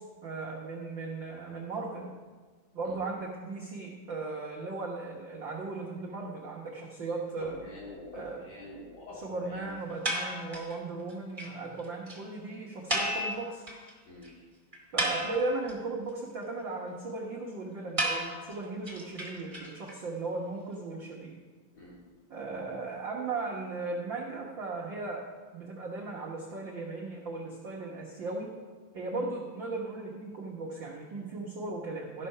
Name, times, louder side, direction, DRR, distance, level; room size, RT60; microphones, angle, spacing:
voice 1, 0.0-2.1 2.7-7.6 8.1-8.4 9.2-13.6 14.9-21.4 22.3-25.3 25.5-28.5 28.9-32.3, right 3 dB, 80° right, -4 dB, 1.0 m, -37 dB
voice 2, 7.4-9.7 14.1-14.3 21.7-22.0, left 1 dB, 65° left, -7 dB, 5.1 m, -45 dB
sound 1, 10.0-10.8 11.1-11.2 11.4-11.5 11.8-11.9 12.1-12.2 12.9-13.9 14.2-14.3 14.7-15.7 18.0-19.9, right 1 dB, 20° right, 0.8 m, -32 dB
13.5 x 5.7 x 5.5 m, 1.4 s
omnidirectional pair, 3.9 m